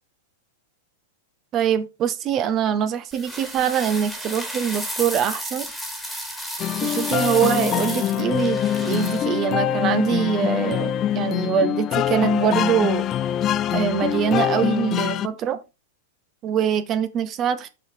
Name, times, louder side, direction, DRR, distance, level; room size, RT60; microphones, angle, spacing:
voice 1, 1.5-5.7 6.8-13.1 13.7-15.6 16.4-17.7, right 8 dB, 35° right, 0.9 m, -23 dB
sound 1, 3.1-9.2, equal, ahead, 2.0 m, -33 dB
sound 2, 6.6-15.3, left 11 dB, 35° left, 0.4 m, -24 dB
6.2 x 4.2 x 4.8 m
hypercardioid pair, 100°, 0 cm